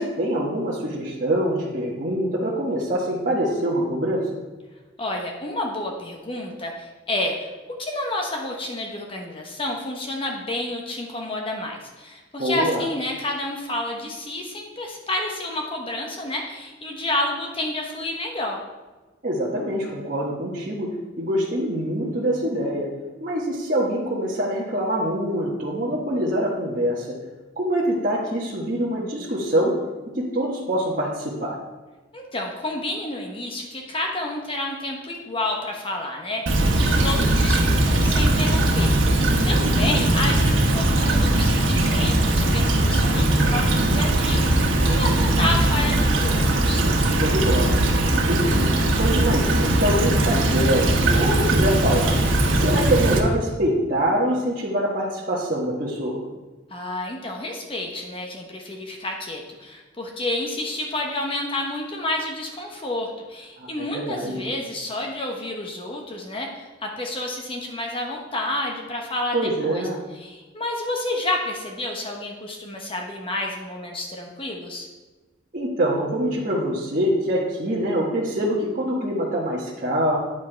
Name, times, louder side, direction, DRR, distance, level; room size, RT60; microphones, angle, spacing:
voice 1, 0.0-4.3 12.4-12.8 19.2-20.9 21.2-22.9 23.2-27.1 27.6-29.7 30.1-31.6 37.1-37.3 39.6-40.0 47.1-47.8 48.1-48.7 48.9-52.1 52.5-56.2 63.6-64.4 69.3-70.0 75.5-80.2, right 1 dB, 45° right, -6 dB, 1.3 m, -24 dB
voice 2, 5.0-7.5 7.8-18.6 32.1-46.8 56.7-69.8 70.1-74.9, left 1 dB, 30° left, 1 dB, 1.0 m, -30 dB
Stream / Trickle dribble, 36.5-53.2, right 1 dB, 85° right, 1.2 m, -20 dB
9.1 x 6.0 x 4.5 m, 1.2 s
head